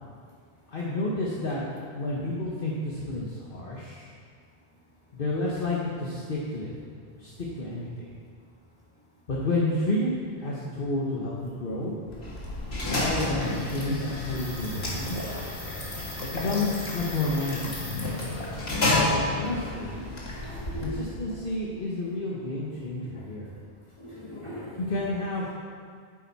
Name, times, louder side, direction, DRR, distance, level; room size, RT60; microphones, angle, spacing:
voice 1, 0.7-4.1 5.1-6.7 7.2-8.1 9.3-11.9 12.9-15.2 16.2-17.9 18.8-20.0 20.8-23.5 24.8-25.6, left 2 dB, 55° left, -5 dB, 1.4 m, -30 dB
sound 1, 12.1-21.4, left 1 dB, 70° left, 2.1 m, -31 dB
voice 2, 19.9-21.0 23.1-23.2 24.0-24.8, left 1 dB, 25° left, -8 dB, 3.2 m, -41 dB
11.5 x 9.1 x 4.2 m, 2.1 s
omnidirectional pair, 1.1 m